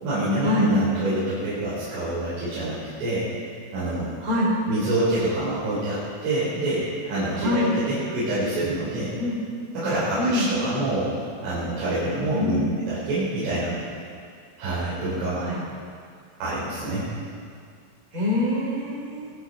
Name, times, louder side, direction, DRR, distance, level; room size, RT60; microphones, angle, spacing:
voice 1, 0.0-3.3 3.7-4.1 4.7-9.1 9.7-11.2 11.4-12.6 12.9-13.7 14.6-15.4 16.4-17.1, right 1 dB, 80° right, -11 dB, 6.4 m, -26 dB
voice 2, 4.2-4.5 7.4-7.7 9.2-9.4 10.2-10.5 12.3-12.6 15.4-15.6 18.1-19.3, left 2 dB, 20° right, -3 dB, 2.9 m, -25 dB
20.0 x 13.5 x 4.0 m, 2.2 s
omnidirectional pair, 5.6 m